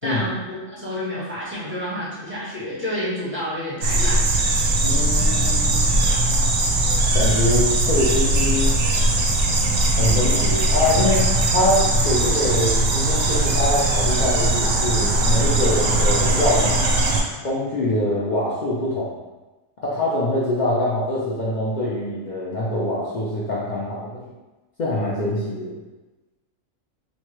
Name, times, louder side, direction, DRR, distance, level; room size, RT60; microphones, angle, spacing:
voice 1, 0.0-4.3, equal, 10° right, -9 dB, 0.7 m, -29 dB
sound 1, 3.8-17.2, right 2 dB, 65° right, 0.7 m, -20 dB
voice 2, 4.8-5.8 7.1-8.7 10.0-16.8 17.4-19.1 19.8-24.2 24.8-25.7, left 1 dB, 60° left, -7 dB, 0.4 m, -24 dB
3.0 x 2.3 x 3.0 m, 1.2 s
omnidirectional pair, 1.4 m